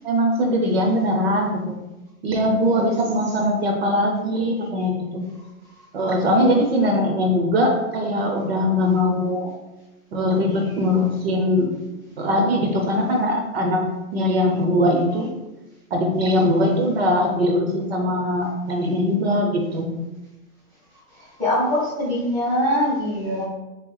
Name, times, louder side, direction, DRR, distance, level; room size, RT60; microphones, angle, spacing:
voice 1, 0.0-1.8 2.2-5.2 5.9-9.5 10.1-11.7 12.2-13.8 14.1-15.3 15.9-19.9, left 1 dB, 45° right, 2 dB, 0.7 m, -21 dB
voice 2, 21.4-23.4, left 1 dB, 5° left, -11 dB, 0.7 m, -22 dB
3.8 x 3.0 x 3.8 m, 1.0 s
hypercardioid pair, 160°, 44 cm